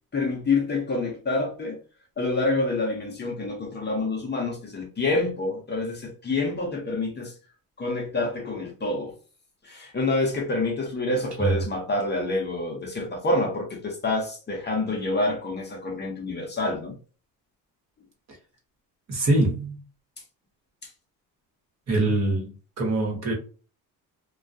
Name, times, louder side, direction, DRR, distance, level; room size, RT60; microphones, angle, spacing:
voice 1, 0.1-1.8 2.2-7.3 7.8-9.1 9.6-16.9, left 2 dB, 30° left, 0.7 m, -27 dB
voice 2, 19.1-19.8 21.9-22.5 22.8-23.3, right 2 dB, 45° right, 1.0 m, -23 dB
2.3 x 2.2 x 2.6 m
cardioid pair, 105°, 37 cm